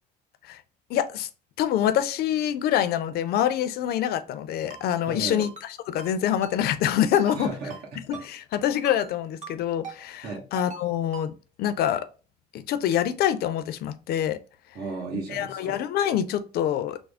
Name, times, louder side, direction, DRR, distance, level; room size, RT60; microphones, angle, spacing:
voice 1, 0.9-1.3 1.6-7.5 8.2-11.3 11.6-12.0 12.5-14.4 15.3-17.0, left 10 dB, 65° left, 0.5 m, -25 dB
Ringtone, 4.7-4.8 5.4-5.7 6.0-6.1 6.4-6.6 7.1-7.4 7.7-7.8 8.1-8.3 8.8-9.1 9.4-9.5 9.8-10.0 10.6-10.8 11.1-11.3, right 5 dB, 45° right, 0.9 m, -40 dB
voice 2, 5.1-5.5 7.3-8.0 10.2-10.4 14.7-15.8, right 3 dB, 70° right, 1.2 m, -34 dB
3.5 x 2.0 x 3.4 m
cardioid pair, 110°, 17 cm